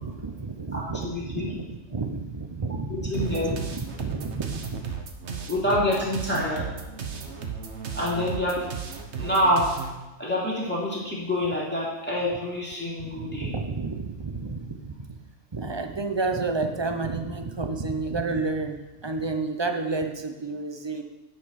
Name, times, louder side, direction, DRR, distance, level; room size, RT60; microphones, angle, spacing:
voice 1, 0.0-4.8 13.0-15.2 15.5-21.0, right 3 dB, 30° right, 5 dB, 0.5 m, -31 dB
voice 2, 0.7-1.5 2.9-3.5 5.5-6.7 8.0-8.6 9.2-9.7 10.2-13.6, left 1 dB, 10° left, -7 dB, 2.8 m, -26 dB
sound 1, 3.1-9.9, right 6 dB, 65° right, 1.2 m, -35 dB
9.3 x 5.2 x 6.5 m, 1.1 s
omnidirectional pair, 1.3 m